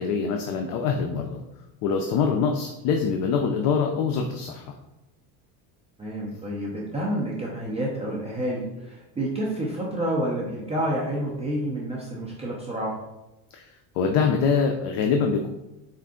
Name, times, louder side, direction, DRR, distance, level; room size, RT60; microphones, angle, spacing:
voice 1, 0.0-1.4 1.8-4.7 13.5-13.7 14.0-15.5, left 5 dB, 55° left, 3 dB, 0.5 m, -24 dB
voice 2, 6.0-13.0, right 1 dB, 15° right, -4 dB, 0.4 m, -29 dB
4.5 x 2.5 x 3.6 m, 0.97 s
cardioid pair, 145°, 42 cm